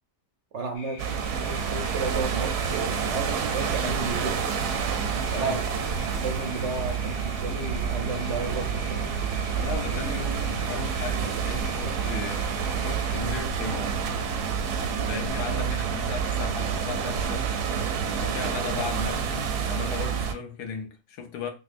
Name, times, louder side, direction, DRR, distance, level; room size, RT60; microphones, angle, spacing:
voice 1, 0.5-4.5 5.3-6.0 6.2-9.1 15.5-15.7, right 4 dB, 60° right, 0.8 m, -33 dB
sound 1, 0.7-13.2, left 4 dB, 65° left, 1.3 m, -46 dB
sound 2, 1.0-20.3, right 6 dB, 85° right, 1.1 m, -28 dB
voice 2, 9.6-14.0 15.1-17.5 18.2-21.5, left 6 dB, 90° left, 1.4 m, -36 dB
5.3 x 2.2 x 2.5 m
omnidirectional pair, 1.6 m